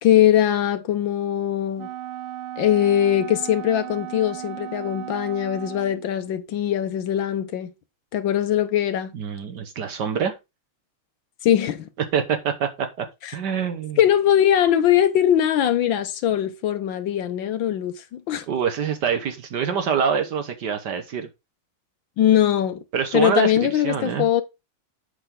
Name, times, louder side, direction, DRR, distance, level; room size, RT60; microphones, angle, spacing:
voice 1, 0.0-1.9 2.6-7.7 8.1-9.1 11.4-11.9 13.2-13.4 14.0-18.4 22.2-22.8 23.1-24.4, left 11 dB, 70° left, 1.5 m, -21 dB
Wind instrument woodwind instrument, 1.8-6.1, right 12 dB, 80° right, 1.4 m, -35 dB
voice 2, 9.1-10.3 12.1-13.1 13.3-14.0 18.5-21.3 22.9-24.3, right 7 dB, 60° right, 1.4 m, -25 dB
8.0 x 6.4 x 3.7 m
omnidirectional pair, 2.4 m